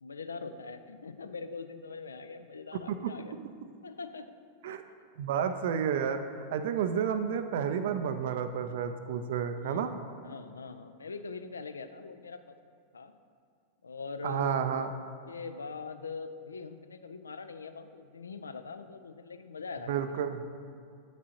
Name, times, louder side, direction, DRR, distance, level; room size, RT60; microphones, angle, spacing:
voice 1, 0.0-3.3 3.8-4.3 4.6-4.8 9.6-12.5 12.9-13.1 13.8-14.9 15.3-20.3, left 4 dB, 75° left, 10 dB, 0.3 m, -42 dB
voice 2, 5.2-6.2 6.5-9.9 14.2-14.9 19.9-20.4, right 8 dB, 55° right, 9 dB, 0.3 m, -31 dB
8.2 x 6.1 x 2.8 m, 2.3 s
figure-of-eight pair, 90°, 0 cm